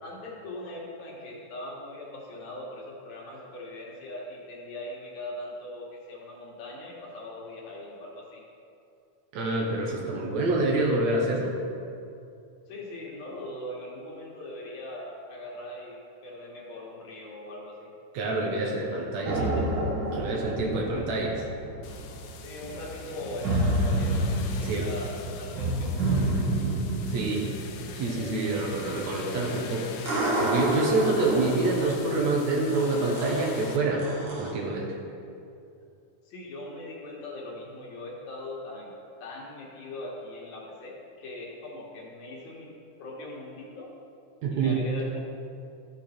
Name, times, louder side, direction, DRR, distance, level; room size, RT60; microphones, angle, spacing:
voice 1, 0.0-8.4 12.7-17.9 19.2-19.7 22.4-26.5 36.2-39.0 39.2-42.7 43.0-43.9 44.5-45.3, left 1 dB, 70° left, -3 dB, 2.9 m, -40 dB
voice 2, 9.3-11.5 18.1-19.6 20.1-21.4 24.6-24.9 27.1-27.4 28.0-34.1 34.4-35.0 44.4-44.8, right 2 dB, 65° right, -1 dB, 2.2 m, -27 dB
sound 1, 19.2-34.5, right 1 dB, 45° right, 1.9 m, -30 dB
sound 2, 21.8-33.8, left 6 dB, 85° left, 2.2 m, -44 dB
13.5 x 6.7 x 4.4 m, 2.6 s
omnidirectional pair, 3.5 m